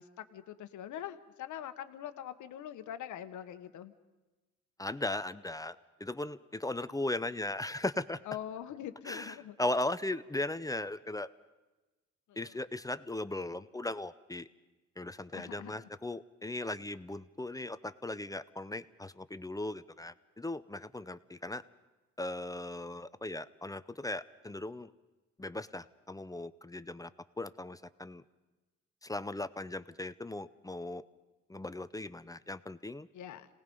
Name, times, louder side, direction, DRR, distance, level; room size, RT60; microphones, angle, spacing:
voice 1, 0.0-3.9 8.3-9.5 12.3-12.5 15.3-15.7 33.1-33.5, left 10 dB, 75° left, 10 dB, 1.1 m, -43 dB
voice 2, 4.8-8.2 9.0-11.3 12.4-14.5 15.0-21.6 22.2-24.9 25.4-27.1 27.4-28.2 29.0-31.0 31.5-33.1, left 2 dB, 10° left, 13 dB, 0.6 m, -38 dB
27.0 x 18.5 x 5.4 m, 1.1 s
cardioid pair, 90°, 30 cm